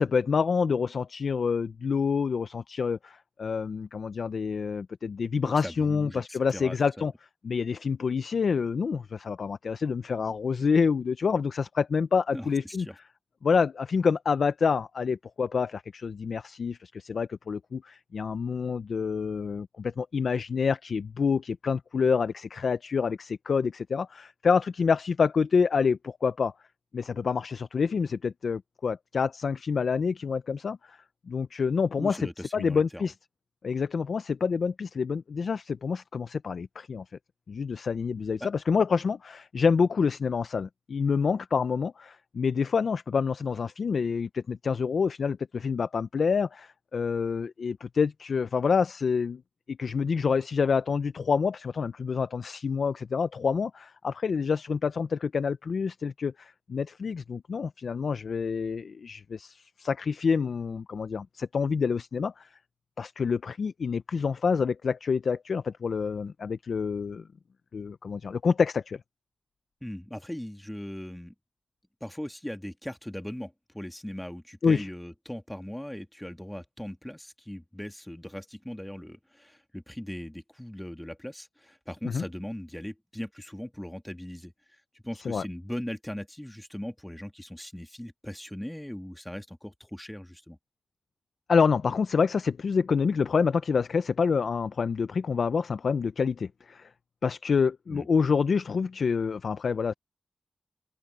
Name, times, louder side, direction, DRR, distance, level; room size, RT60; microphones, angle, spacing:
voice 1, 0.0-7.1 7.4-12.9 13.4-26.5 26.9-31.0 31.3-32.3 32.5-33.1 33.6-37.0 37.5-49.4 49.7-62.5 63.0-67.2 67.7-69.0 74.6-74.9 82.0-82.2 85.2-85.4 91.5-96.9 97.2-99.9, left 5 dB, 80° left, 0.5 m, -27 dB
voice 2, 5.6-7.1 12.3-12.9 32.0-33.0 38.4-38.5 69.8-71.3 72.0-90.6 97.9-98.1, equal, 10° left, 1.9 m, -39 dB
open air
cardioid pair, 65°, 0 cm